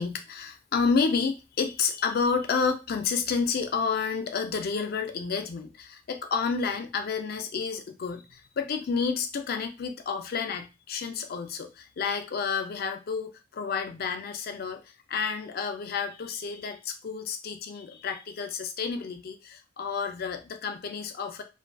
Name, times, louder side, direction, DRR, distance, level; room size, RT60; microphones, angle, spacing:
voice 1, 0.0-21.4, left 5 dB, 45° left, 7 dB, 0.3 m, -30 dB
2.3 x 2.3 x 2.2 m, 0.29 s
head